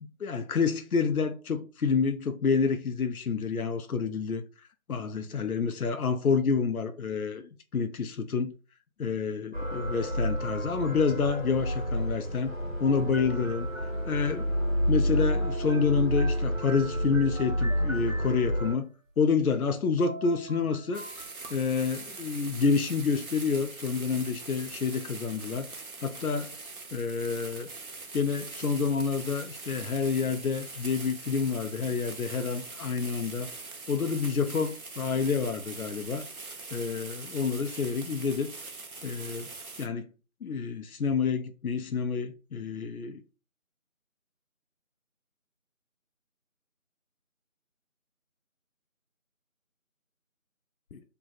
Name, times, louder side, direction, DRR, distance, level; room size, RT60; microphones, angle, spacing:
voice 1, 0.2-4.4 4.9-8.5 9.0-12.5 12.8-13.7 14.1-14.5 14.9-18.9 19.2-21.0 21.5-25.7 26.0-26.5 26.9-27.7 28.1-33.5 33.9-36.3 36.7-38.5 39.0-39.5 39.8-40.1 40.4-43.2 50.9-51.0, left 5 dB, 85° left, 0.6 m, -28 dB
sound 1, 9.5-18.7, equal, 35° right, 1.3 m, -30 dB
sound 2, 13.1-14.9 15.2-18.8 19.7-19.8 20.0-22.1, right 2 dB, 65° right, 1.0 m, -45 dB
sound 3, 20.9-39.9, right 3 dB, 90° right, 0.9 m, -43 dB
3.3 x 2.2 x 3.9 m
figure-of-eight pair, 180°, 42 cm